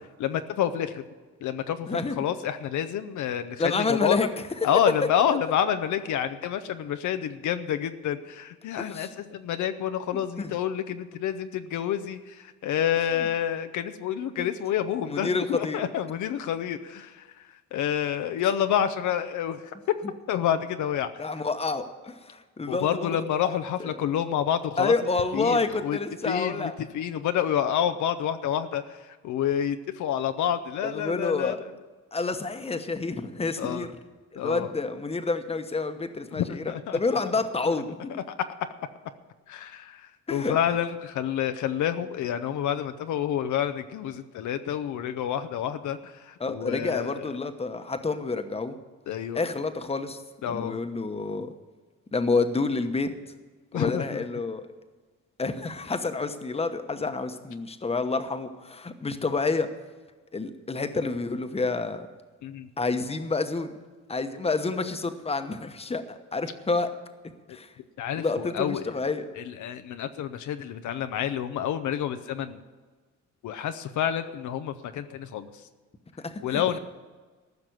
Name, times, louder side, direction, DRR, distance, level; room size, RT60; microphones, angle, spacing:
voice 1, 0.2-1.0 1.4-4.2 4.6-19.6 20.3-21.2 22.7-24.9 25.3-26.0 26.2-31.6 33.6-33.9 34.4-34.7 36.3-37.0 37.7-37.8 39.5-47.2 49.1-49.4 50.4-50.8 53.7-54.2 62.4-62.7 68.0-68.9 69.4-72.6 73.4-75.5 76.4-76.8, left 9 dB, 75° left, 9 dB, 0.8 m, -28 dB
voice 2, 1.9-2.2 3.6-4.3 8.8-9.1 10.4-10.5 14.4-14.5 15.1-15.8 21.2-23.2 23.4-23.5 23.8-23.9 24.8-26.7 30.8-31.6 32.1-33.9 34.3-38.0 40.3-40.6 46.4-48.7 49.3-50.2 50.4-51.5 52.1-53.1 53.7-54.6 55.4-59.7 60.3-62.1 62.8-63.7 64.1-66.0 66.3-66.9 67.5-67.7 68.2-69.3 76.2-76.8, left 3 dB, 20° left, 8 dB, 1.1 m, -28 dB
14.5 x 6.0 x 9.3 m, 1.3 s
cardioid pair, 90°, 30 cm